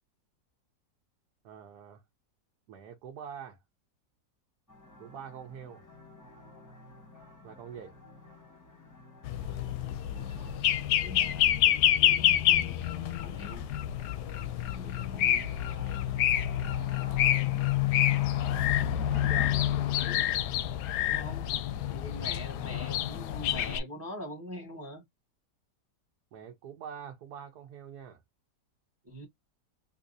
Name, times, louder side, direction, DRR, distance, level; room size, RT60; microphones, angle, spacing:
voice 1, 1.4-2.0 2.7-3.6 5.0-5.9 7.4-7.9 19.1-19.6 26.3-28.2, right 8 dB, 65° right, 1.2 m, -45 dB
sound 1, 4.7-21.6, left 1 dB, 15° left, 0.8 m, -52 dB
sound 2, 9.2-23.8, left 11 dB, 75° left, 1.1 m, -28 dB
voice 2, 10.8-11.5 12.0-13.7 14.7-15.5 20.1-20.3 21.0-21.5 21.9-25.0 29.1-29.3, equal, 10° right, 0.9 m, -44 dB
3.9 x 2.7 x 2.5 m
omnidirectional pair, 1.9 m